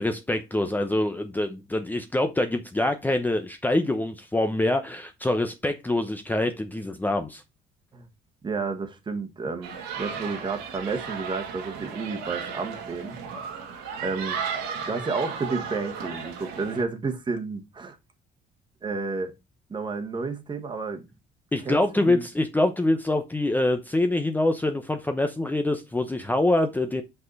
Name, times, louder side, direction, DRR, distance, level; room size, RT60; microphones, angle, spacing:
voice 1, 0.0-7.4 21.5-27.0, left 1 dB, 10° left, 0.8 m, -25 dB
voice 2, 8.4-13.1 14.0-14.4 14.9-18.0 18.8-19.3 19.7-21.0 21.6-22.2, right 4 dB, 25° right, 1.5 m, -31 dB
sound 1, 9.6-16.8, right 6 dB, 90° right, 2.1 m, -35 dB
6.0 x 5.5 x 4.0 m
cardioid pair, 110°, 17 cm